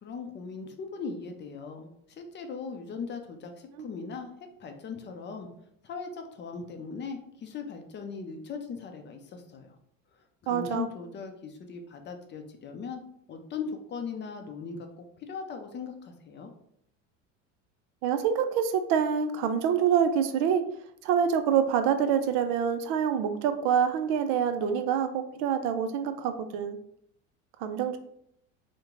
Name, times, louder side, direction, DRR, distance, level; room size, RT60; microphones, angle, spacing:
voice 1, 0.0-5.5 5.8-9.8 10.1-13.0 13.3-16.5, left 5 dB, 30° left, 4 dB, 0.5 m, -39 dB
voice 2, 10.5-10.9 18.0-20.7 21.0-26.8 27.6-28.0, right 8 dB, 60° right, 9 dB, 0.5 m, -26 dB
2.9 x 2.2 x 3.7 m, 0.71 s
supercardioid pair, 95°, 38 cm